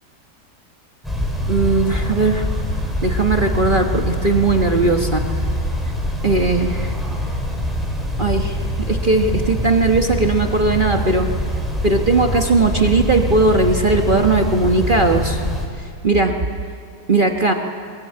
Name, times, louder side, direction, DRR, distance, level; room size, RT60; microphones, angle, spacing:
sound 1, 1.0-15.7, equal, ahead, 4.1 m, -24 dB
voice 1, 1.5-2.5 3.0-5.3 5.8-5.9 6.2-7.0 8.2-11.3 11.8-15.4 16.0-16.4 17.1-17.5, right 3 dB, 35° right, 3 dB, 1.3 m, -18 dB
23.0 x 22.5 x 8.8 m, 2.3 s
omnidirectional pair, 1.8 m